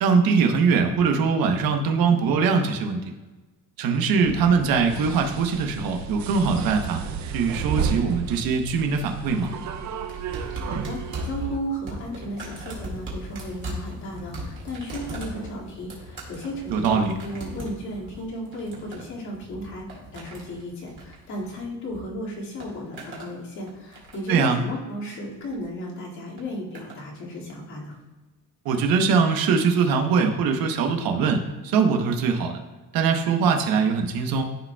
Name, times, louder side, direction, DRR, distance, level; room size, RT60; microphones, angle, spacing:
voice 1, 0.0-3.0 3.8-7.0 7.3-9.5 16.7-17.1 24.3-24.6 28.6-32.6 32.9-34.4, right 5 dB, 80° right, 4 dB, 1.0 m, -22 dB
sound 1, 4.2-11.6, right 6 dB, 55° right, 0.6 m, -32 dB
sound 2, 10.1-22.0 22.3-23.3 23.7-24.4 25.3-25.6 26.4-27.0 27.9-28.0, right 1 dB, 35° right, 2.0 m, -39 dB
voice 2, 10.3-28.0, equal, 55° left, -4 dB, 2.2 m, -34 dB
13.5 x 5.0 x 2.3 m, 1.2 s
cardioid pair, 160°, 35 cm